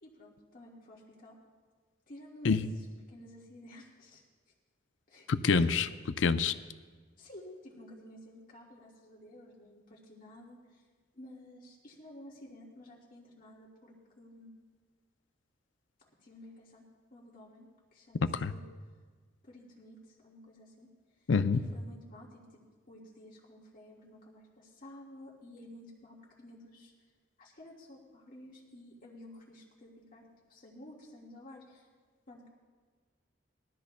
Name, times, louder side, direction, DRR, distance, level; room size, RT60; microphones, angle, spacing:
voice 1, 0.0-1.4 2.1-4.2 5.1-5.3 7.2-10.8 11.1-14.5 16.2-16.8 17.1-18.7 19.4-21.3 21.5-22.6 22.9-26.9 27.4-30.2 30.5-31.9 32.3-32.5, left 1 dB, 50° left, -5 dB, 1.7 m, -52 dB
voice 2, 5.3-5.9 6.2-6.5 18.3-18.5 21.3-21.6, left 4 dB, 70° left, 11 dB, 0.5 m, -26 dB
21.0 x 12.5 x 2.2 m, 1.5 s
head